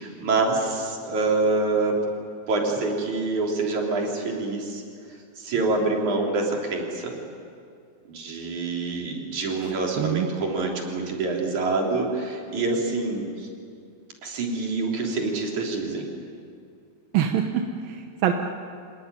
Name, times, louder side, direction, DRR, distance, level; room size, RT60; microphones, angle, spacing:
voice 1, 0.0-2.0 2.5-4.8 5.4-7.2 8.1-13.5 14.2-16.1, right 3 dB, 45° right, 0 dB, 4.6 m, -26 dB
voice 2, 10.0-10.3 17.1-18.3, right 10 dB, 70° right, 4 dB, 2.4 m, -24 dB
27.0 x 19.0 x 10.0 m, 2.3 s
omnidirectional pair, 5.1 m